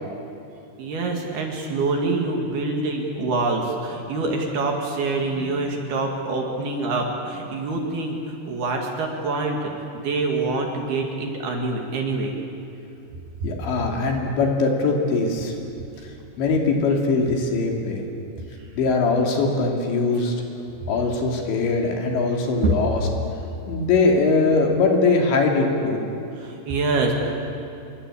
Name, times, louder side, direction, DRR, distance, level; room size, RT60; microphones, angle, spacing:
voice 1, 0.8-8.2 8.5-12.3 13.4-13.5 22.6-22.7 26.4-27.1, right 3 dB, 55° right, 1 dB, 3.7 m, -25 dB
voice 2, 13.4-15.5 16.4-18.0 18.8-20.3 20.9-23.1 23.7-26.0, left 3 dB, 65° left, 1 dB, 4.7 m, -21 dB
27.5 x 23.0 x 8.6 m, 2.7 s
omnidirectional pair, 6.0 m